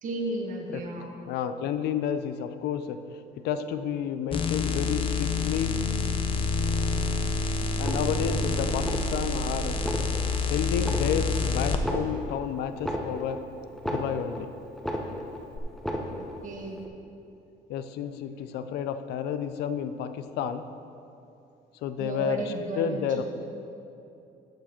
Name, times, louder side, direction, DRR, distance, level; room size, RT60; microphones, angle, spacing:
voice 1, 0.0-1.1 9.0-9.1 16.2-16.9 22.0-23.2, right 2 dB, 50° right, 1 dB, 1.4 m, -34 dB
voice 2, 1.3-5.8 7.8-9.8 10.5-13.5 13.9-14.5 17.7-20.7 21.8-23.2, left 8 dB, 80° left, 11 dB, 0.5 m, -31 dB
sound 1, 4.3-11.8 15.5-15.6, left 3 dB, 30° left, 0.6 m, -27 dB
sound 2, 7.7-8.4 8.8-9.4 9.7-10.4 10.8-11.4 11.7-14.4 14.7-15.4 15.7-16.4 16.7-16.9, equal, ahead, 0.9 m, -34 dB
14.0 x 4.8 x 4.4 m, 2.7 s
cardioid pair, 110°, 17 cm